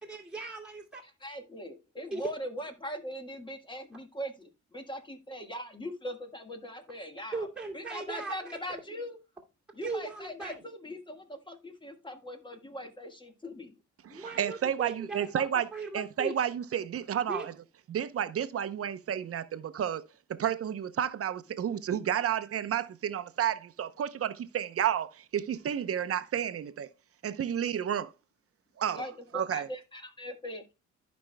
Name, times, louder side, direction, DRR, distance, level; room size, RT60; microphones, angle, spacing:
voice 1, 0.0-1.0 2.1-2.3 7.3-8.6 9.8-10.6 14.0-16.4 17.3-17.5, right 3 dB, 5° right, 2.4 m, -38 dB
voice 2, 1.2-7.5 7.7-9.2 9.7-13.7 28.9-30.7, equal, 15° left, 1.5 m, -40 dB
voice 3, 14.0-15.7 15.9-17.5 17.9-20.0 20.3-26.9 27.2-28.1 28.8-29.0 29.3-29.7, right 9 dB, 50° right, 0.8 m, -31 dB
15.0 x 5.2 x 2.2 m
cardioid pair, 90°, 30 cm